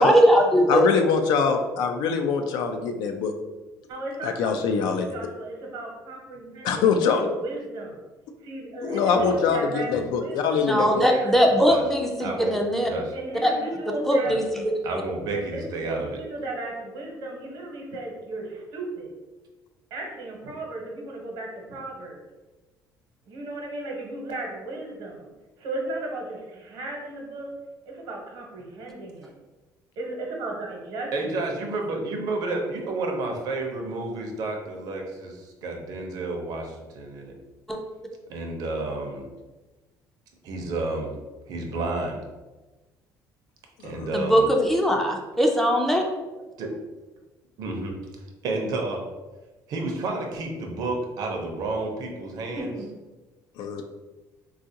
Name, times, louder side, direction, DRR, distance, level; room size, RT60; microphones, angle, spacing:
voice 1, 0.0-0.8 10.7-12.9 13.4-13.5 14.0-14.4 37.7-37.8 44.1-46.0, equal, 5° left, 1 dB, 0.4 m, -20 dB
voice 2, 0.7-3.3 4.2-5.1 6.6-7.3 8.8-11.1 43.8-44.1 53.6-53.8, left 5 dB, 80° left, 6 dB, 0.4 m, -23 dB
voice 3, 3.9-8.0 8.4-11.4 13.1-14.3 14.9-15.0 15.3-19.1 19.9-22.2 23.3-25.3 25.6-27.5 27.9-29.3 30.0-31.4 52.4-52.9, right 2 dB, 80° right, -1 dB, 0.9 m, -35 dB
voice 4, 11.3-11.8 12.2-12.6 12.8-13.1 14.3-14.4 14.8-16.2 31.1-37.3 38.3-39.2 40.4-41.2 41.5-42.2 43.8-44.5 46.6-46.7 47.6-48.0 48.4-49.0 49.7-52.7, right 2 dB, 65° right, 2 dB, 0.6 m, -31 dB
3.7 x 2.4 x 2.7 m, 1.2 s
cardioid pair, 135°, 7 cm